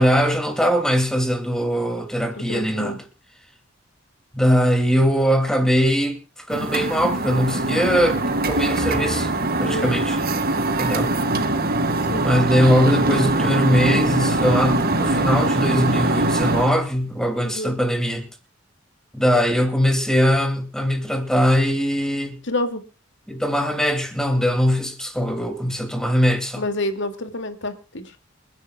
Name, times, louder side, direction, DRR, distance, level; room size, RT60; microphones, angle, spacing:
voice 1, 0.0-3.0 4.3-10.2 10.8-11.1 12.2-18.3 19.1-22.4 23.3-26.6, equal, 5° left, 2.6 m, -21 dB
voice 2, 2.3-3.0 9.6-9.9 12.1-12.2 17.4-17.8 22.4-22.9 26.6-28.2, left 1 dB, 60° left, 2.4 m, -28 dB
sound 1, 6.5-16.7, right 2 dB, 50° right, 2.1 m, -22 dB
28.5 x 11.0 x 2.4 m
head